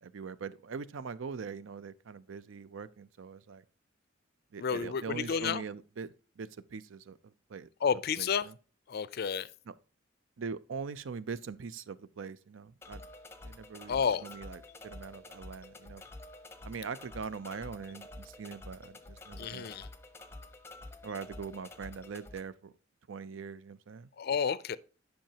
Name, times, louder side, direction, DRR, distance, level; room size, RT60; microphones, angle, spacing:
voice 1, 0.0-3.6 4.5-7.7 8.2-8.5 9.7-9.8 10.4-13.0 13.4-16.0 16.6-19.7 21.0-22.7 23.1-24.1, right 5 dB, 75° right, 0.5 m, -42 dB
voice 2, 4.6-5.6 7.8-8.5 8.9-9.5 13.9-14.3 19.4-19.9 24.2-24.8, left 6 dB, 55° left, 0.4 m, -31 dB
sound 1, 12.8-22.4, left 2 dB, 15° left, 0.6 m, -49 dB
10.5 x 5.7 x 2.8 m
head